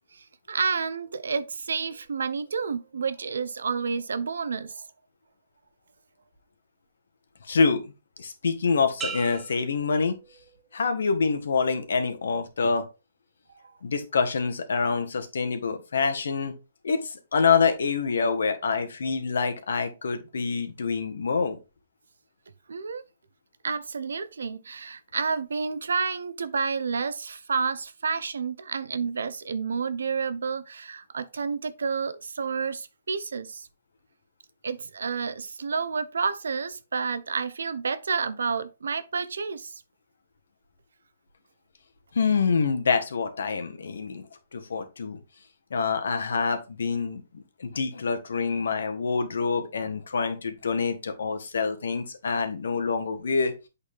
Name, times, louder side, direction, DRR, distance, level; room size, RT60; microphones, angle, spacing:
voice 1, 0.1-4.9 22.7-23.0 23.6-33.7 34.6-39.8, right 5 dB, 85° right, 0.8 m, -30 dB
voice 2, 7.5-7.9 8.2-10.1 10.7-12.9 13.8-16.5 16.8-21.6 42.1-44.2 44.5-45.2 45.7-53.5, left 5 dB, 80° left, 1.5 m, -26 dB
sound 1, 9.0-10.8 11.3-11.7, right 6 dB, 15° right, 0.7 m, -40 dB
8.0 x 4.2 x 3.5 m
hypercardioid pair, 155°, 0 cm